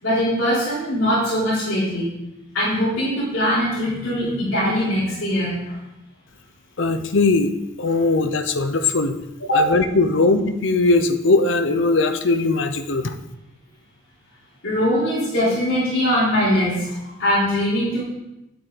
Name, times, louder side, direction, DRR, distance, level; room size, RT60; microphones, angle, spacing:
voice 1, 0.0-2.1 2.5-5.8 9.4-9.7 14.6-18.0, equal, 85° left, -10 dB, 3.8 m, -21 dB
voice 2, 6.8-7.5 7.8-9.2 9.5-13.1, left 3 dB, 65° left, 9 dB, 0.7 m, -19 dB
9.2 x 8.1 x 4.0 m, 0.94 s
head